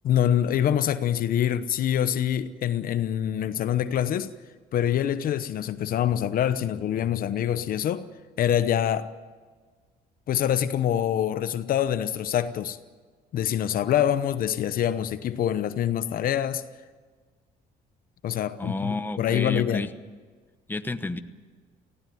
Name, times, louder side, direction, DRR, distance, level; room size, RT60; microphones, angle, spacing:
voice 1, 0.0-4.3 4.7-8.1 8.4-9.1 10.3-12.8 13.3-16.6 18.2-19.9, left 10 dB, 60° left, 0.9 m, -25 dB
voice 2, 18.6-19.9 20.7-21.2, left 2 dB, 10° left, 1.1 m, -30 dB
18.5 x 16.0 x 9.3 m
cardioid pair, 110°, 17 cm